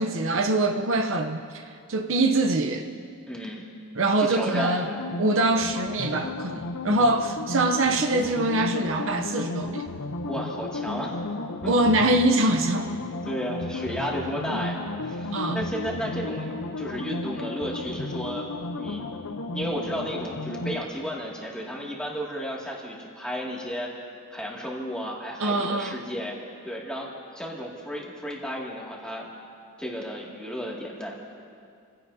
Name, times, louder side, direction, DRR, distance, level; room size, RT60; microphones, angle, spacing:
voice 1, 0.0-1.6 1.9-2.9 4.0-4.9 5.2-9.9 11.7-12.9 14.5-14.6 15.3-15.6 25.4-26.0, right 2 dB, 60° right, 5 dB, 0.8 m, -24 dB
voice 2, 3.3-3.6 4.2-5.0 10.3-11.2 11.6-11.8 13.2-18.4 18.8-19.2 19.5-23.9 24.3-26.4 26.6-27.1 27.3-29.3 29.8-31.1, equal, 5° left, -4 dB, 2.3 m, -33 dB
sound 1, 4.9-20.8, left 2 dB, 75° left, 0.8 m, -34 dB
29.0 x 16.5 x 2.8 m, 2.4 s
head